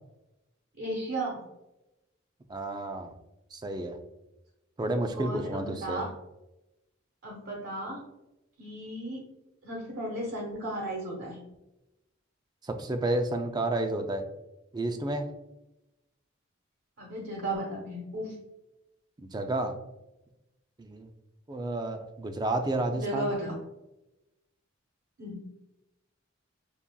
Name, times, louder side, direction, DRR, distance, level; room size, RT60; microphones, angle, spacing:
voice 1, 0.8-1.4 5.1-6.1 7.2-8.0 8.6-9.2 9.6-11.4 17.0-18.3 23.0-23.6 25.2-25.4, right 1 dB, 70° right, -4 dB, 1.0 m, -34 dB
voice 2, 2.5-3.1 3.5-4.0 4.8-6.0 12.6-14.2 14.7-15.3 19.3-19.7 20.8-21.1 21.5-23.3, right 2 dB, 20° right, 6 dB, 0.4 m, -31 dB
6.9 x 2.4 x 2.2 m, 0.95 s
head